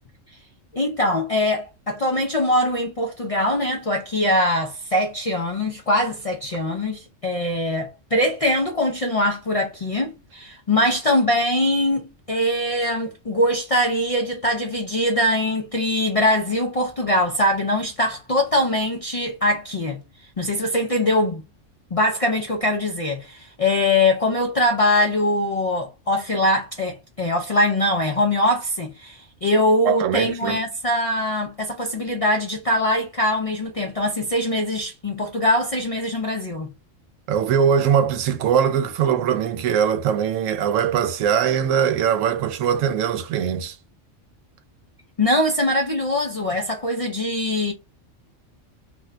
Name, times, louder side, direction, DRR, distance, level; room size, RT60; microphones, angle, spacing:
voice 1, 0.7-12.0 12.3-20.0 20.4-21.4 21.9-36.7 45.2-47.7, left 1 dB, 60° left, 0.3 m, -22 dB
voice 2, 29.8-30.6 37.3-43.8, right 8 dB, 90° right, 1.0 m, -21 dB
2.5 x 2.2 x 3.6 m
omnidirectional pair, 1.3 m